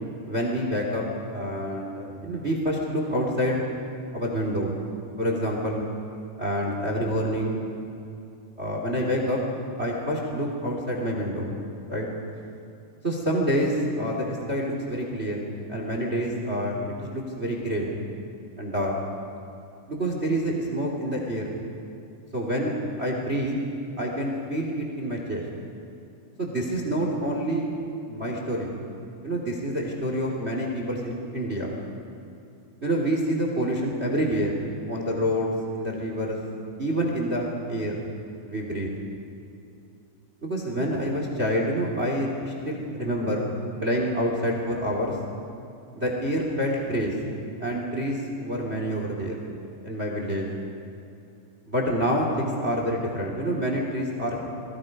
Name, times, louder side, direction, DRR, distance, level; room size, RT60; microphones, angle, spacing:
voice 1, 0.2-1.0 1.3-3.6 4.1-4.7 5.2-5.8 6.4-7.6 8.6-9.4 9.8-11.5 11.9-12.1 13.0-15.4 15.7-17.9 18.6-19.0 19.9-21.5 22.3-22.7 23.0-23.5 24.0-25.4 26.4-27.7 28.1-28.7 29.2-31.7 32.8-34.5 34.9-36.4 36.8-38.0 38.4-38.9 40.4-43.5 43.8-45.2 45.9-47.1 47.6-49.4 49.8-50.5 51.7-54.4, equal, 20° right, 1 dB, 1.8 m, -27 dB
29.5 x 22.0 x 5.4 m, 2.7 s
omnidirectional pair, 5.8 m